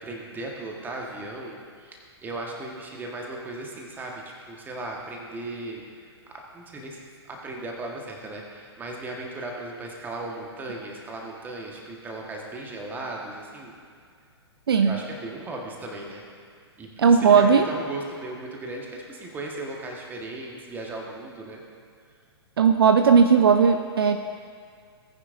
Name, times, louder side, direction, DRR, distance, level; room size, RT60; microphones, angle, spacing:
voice 1, 0.0-5.8 6.5-13.7 14.8-16.2 16.8-21.6, right 2 dB, 15° right, 0 dB, 1.5 m, -37 dB
voice 2, 14.7-15.0 17.0-17.7 22.6-24.2, right 6 dB, 60° right, 7 dB, 0.6 m, -17 dB
18.0 x 9.7 x 2.7 m, 2.1 s
figure-of-eight pair, 115°, 14 cm